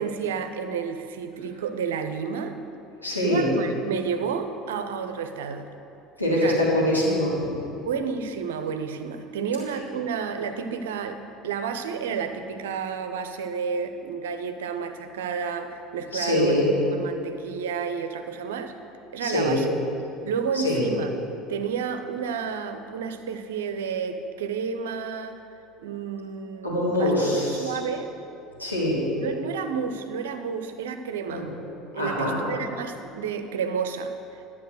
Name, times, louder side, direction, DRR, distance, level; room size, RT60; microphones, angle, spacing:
voice 1, 0.0-2.5 3.1-5.7 6.4-6.6 7.8-16.6 16.9-18.7 19.1-19.7 20.2-21.1 21.5-25.4 25.8-28.2 29.2-31.5 31.9-34.1, right 6 dB, 65° right, 8 dB, 0.7 m, -31 dB
voice 2, 3.0-3.5 6.2-7.5 16.1-16.7 19.2-19.6 20.5-20.9 26.6-27.7 28.6-29.1 31.3-31.5 31.9-32.4, left 1 dB, 85° left, -7 dB, 2.7 m, -24 dB
11.5 x 7.1 x 6.4 m, 2.8 s
figure-of-eight pair, 65°, 0 cm